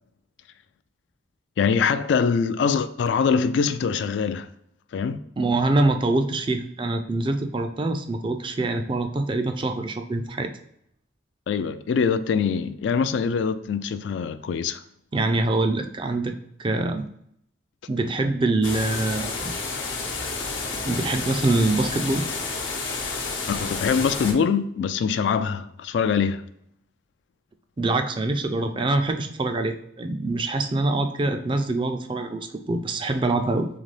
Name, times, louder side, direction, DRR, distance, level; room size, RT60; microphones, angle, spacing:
voice 1, 1.6-4.5 4.9-5.2 11.5-14.8 23.5-26.4, left 6 dB, 70° left, 0.3 m, -23 dB
voice 2, 5.4-10.5 15.1-16.3 16.6-17.0 17.9-19.5 20.8-22.3 27.8-33.7, right 2 dB, 25° right, 0.4 m, -24 dB
sound 1, 18.6-24.3, left 3 dB, 90° left, 0.9 m, -30 dB
3.9 x 3.5 x 3.3 m
head